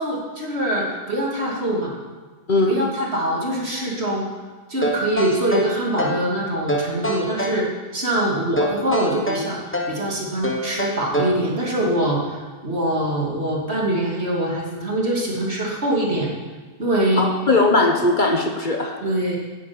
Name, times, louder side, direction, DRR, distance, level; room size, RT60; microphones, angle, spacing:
voice 1, 0.0-2.0 2.7-4.3 4.7-16.3 16.8-17.3 19.0-19.4, right 1 dB, 55° right, -2 dB, 3.0 m, -23 dB
sound 1, 4.8-6.3 6.7-7.6 8.6-10.0 10.4-11.5, equal, 10° left, 1.2 m, -25 dB
voice 2, 17.2-19.0, left 2 dB, 40° left, 4 dB, 1.2 m, -19 dB
10.5 x 9.7 x 8.7 m, 1.3 s
omnidirectional pair, 1.3 m